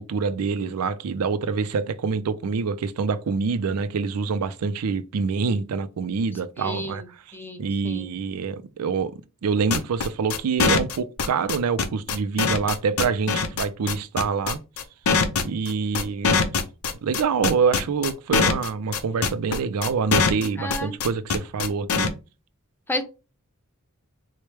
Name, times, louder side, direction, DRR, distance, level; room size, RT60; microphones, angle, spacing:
voice 1, 0.0-7.0 7.3-9.1 9.4-14.6 15.4-16.4 17.0-22.1, right 5 dB, 90° right, 0.4 m, -26 dB
voice 2, 6.6-8.1 20.6-21.0 22.9-23.0, left 1 dB, 10° left, 0.6 m, -32 dB
sound 1, 9.7-22.1, left 5 dB, 75° left, 0.6 m, -22 dB
4.5 x 2.1 x 3.2 m
head